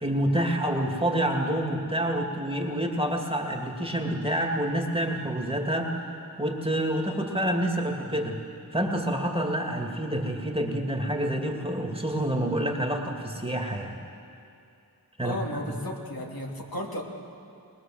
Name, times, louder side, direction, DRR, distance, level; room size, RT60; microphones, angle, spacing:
voice 1, 0.0-6.0 6.4-8.4 8.7-14.0 15.2-15.4, right 1 dB, 15° right, 1 dB, 2.4 m, -28 dB
voice 2, 15.2-17.0, left 1 dB, 70° left, -2 dB, 2.8 m, -34 dB
21.5 x 20.5 x 7.7 m, 2.6 s
wide cardioid pair, 50°, 36 cm